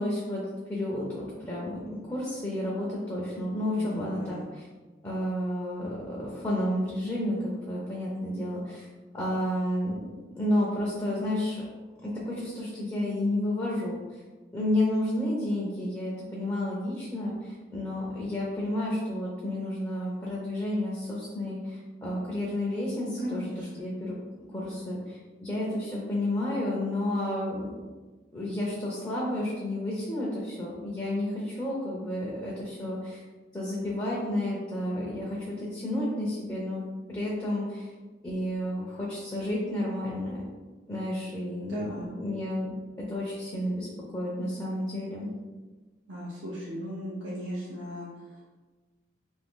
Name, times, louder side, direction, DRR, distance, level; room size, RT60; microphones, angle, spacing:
voice 1, 0.0-4.7 5.0-8.9 9.1-11.6 12.0-14.2 14.5-23.5 23.8-27.9 28.3-33.2 33.5-37.9 38.2-40.4 40.9-43.9 44.1-45.3, left 1 dB, 15° left, -5 dB, 0.5 m, -31 dB
voice 2, 3.8-4.4 23.2-23.7 41.6-42.1 46.1-48.4, equal, 80° right, -6 dB, 0.6 m, -37 dB
2.7 x 2.6 x 3.5 m, 1.3 s
head